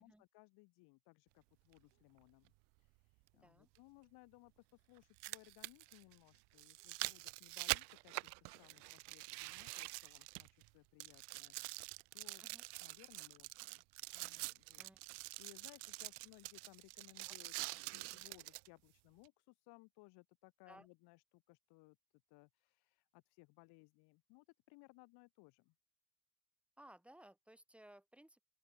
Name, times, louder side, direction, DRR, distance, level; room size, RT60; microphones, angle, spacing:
voice 1, 0.0-2.5 2.8-12.4 12.8-13.8 14.1-17.5 17.9-22.0 22.3-25.7, left 25 dB, 60° left, 1.0 m, -64 dB
sound 1, 1.7-1.8 3.8-3.9 5.0-10.7 11.0-18.7 19.3-19.4, right 31 dB, 65° right, 0.6 m, -46 dB
voice 2, 26.8-28.4, right 1 dB, 5° right, 3.4 m, -61 dB
open air
cardioid pair, 170°, 44 cm